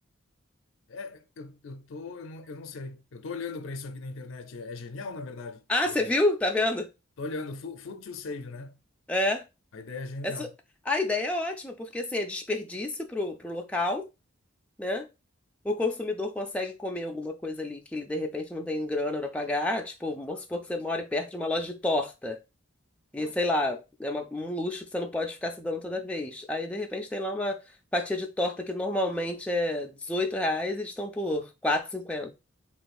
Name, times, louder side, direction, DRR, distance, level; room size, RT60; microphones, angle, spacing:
voice 1, 0.9-6.1 7.2-8.8 9.7-10.5, left 3 dB, 70° left, 0.5 m, -39 dB
voice 2, 5.7-6.9 9.1-9.4 10.2-10.5 10.9-14.1 14.8-15.1 15.6-22.4 23.1-27.6 27.9-32.3, left 2 dB, 5° left, 0.3 m, -29 dB
3.1 x 2.4 x 4.1 m
head